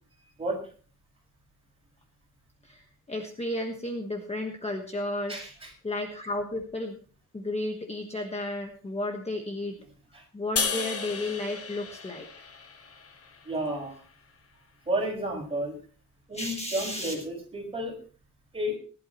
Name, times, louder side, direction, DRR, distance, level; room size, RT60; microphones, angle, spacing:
voice 1, 2.6-5.4 5.8-7.0 7.3-9.8 10.3-12.3 16.3-17.1, left 1 dB, 20° left, 3 dB, 1.3 m, -33 dB
voice 2, 5.3-5.7 10.1-10.2 13.4-14.0 14.9-15.8 16.3-18.0 18.5-18.8, right 1 dB, 15° right, -1 dB, 5.9 m, -31 dB
sound 1, 10.6-13.8, left 5 dB, 45° left, 1.3 m, -34 dB
19.5 x 11.5 x 3.1 m, 0.38 s
wide cardioid pair, 175°, 32 cm